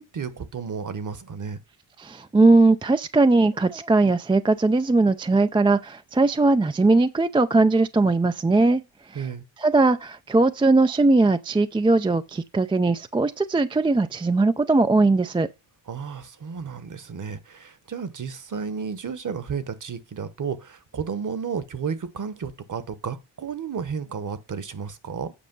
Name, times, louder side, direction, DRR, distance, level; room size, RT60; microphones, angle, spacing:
voice 1, 0.0-1.6 9.1-9.4 15.9-25.3, right 6 dB, 40° right, 1.2 m, -32 dB
voice 2, 2.0-8.8 9.1-9.3 9.6-15.5, right 3 dB, 10° right, 0.4 m, -20 dB
8.6 x 5.2 x 5.3 m
cardioid pair, 75°, 49 cm